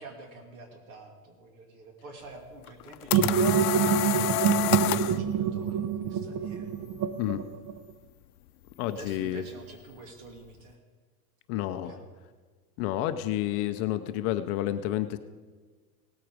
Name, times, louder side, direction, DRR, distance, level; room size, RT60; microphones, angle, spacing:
voice 1, 0.0-6.7 8.9-10.8 11.8-12.1, right 3 dB, 70° right, 3 dB, 2.6 m, -48 dB
sound 1, 2.7-5.2, left 16 dB, 80° left, 0.6 m, -28 dB
sound 2, 3.1-7.9, right 8 dB, 40° right, 0.7 m, -26 dB
voice 2, 8.8-9.4 11.5-12.0 12.8-15.2, left 13 dB, 35° left, 10 dB, 0.5 m, -30 dB
18.0 x 8.6 x 4.7 m, 1.4 s
supercardioid pair, 140°, 44 cm